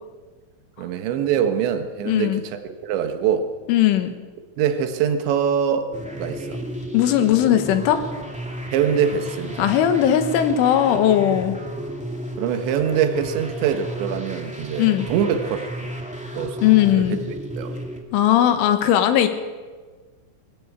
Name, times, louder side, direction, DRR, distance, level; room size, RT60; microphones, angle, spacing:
voice 1, 0.8-3.5 4.6-5.9 6.2-6.6 8.7-9.7 12.4-15.9 16.4-16.6 16.9-17.2 17.6-17.8, right 8 dB, 75° right, 7 dB, 3.6 m, -23 dB
voice 2, 2.1-2.4 3.7-4.1 6.9-8.0 9.6-11.6 14.8-15.1 16.6-17.2 18.1-19.3, left 11 dB, 85° left, 8 dB, 4.0 m, -18 dB
sound 1, 5.9-18.0, right 1 dB, 10° right, 0.3 m, -33 dB
23.0 x 13.5 x 8.4 m, 1.4 s
omnidirectional pair, 5.4 m